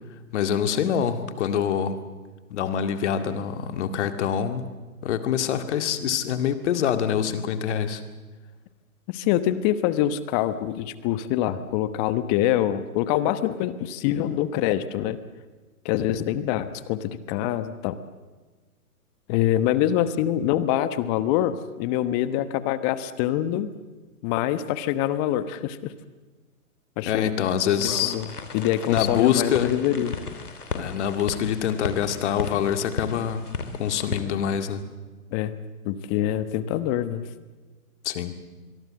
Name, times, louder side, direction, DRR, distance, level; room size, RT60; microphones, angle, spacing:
voice 1, 0.3-2.0 2.5-4.7 5.0-8.0 27.1-28.2 28.9-29.7 30.7-33.5 33.8-34.8 38.0-38.3, left 8 dB, 50° left, 8 dB, 2.2 m, -25 dB
voice 2, 9.1-15.2 15.8-18.0 19.3-23.7 24.2-25.9 27.0-27.3 27.8-30.1 35.3-35.5 35.8-37.3, left 12 dB, 25° left, 13 dB, 1.2 m, -25 dB
sound 1, 27.7-34.2, left 4 dB, 80° left, 3.0 m, -35 dB
25.0 x 22.5 x 7.6 m, 1.3 s
hypercardioid pair, 125°, 44 cm